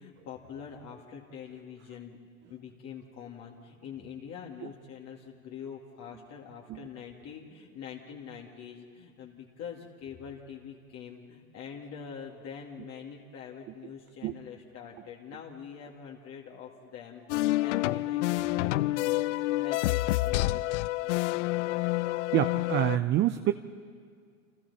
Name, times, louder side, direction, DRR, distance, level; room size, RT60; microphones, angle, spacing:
voice 1, 0.0-21.1, left 7 dB, 35° left, -1 dB, 2.3 m, -45 dB
sound 1, 17.3-23.0, left 18 dB, 55° left, 0.5 m, -28 dB
voice 2, 22.3-23.5, right 13 dB, 25° right, 10 dB, 0.6 m, -26 dB
29.5 x 28.5 x 4.2 m, 2.1 s
hypercardioid pair, 100°, 43 cm